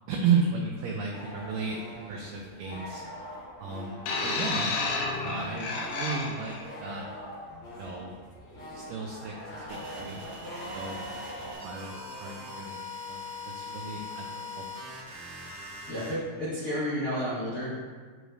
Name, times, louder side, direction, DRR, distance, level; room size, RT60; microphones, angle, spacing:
voice 1, 0.1-3.0 3.6-4.8 5.2-7.1 7.7-8.1 8.5-11.1 11.4-14.7, right 5 dB, 85° right, 1 dB, 1.9 m, -34 dB
sound 1, 1.1-11.5, equal, 40° left, 2.4 m, -43 dB
sound 2, 4.1-6.6 7.5-7.7, left 3 dB, 85° left, 3.1 m, -31 dB
sound 3, 9.7-16.1, left 2 dB, 40° right, 2.9 m, -41 dB
voice 2, 15.9-17.8, equal, 65° left, -10 dB, 0.8 m, -31 dB
12.5 x 4.9 x 2.6 m, 1.5 s
omnidirectional pair, 4.6 m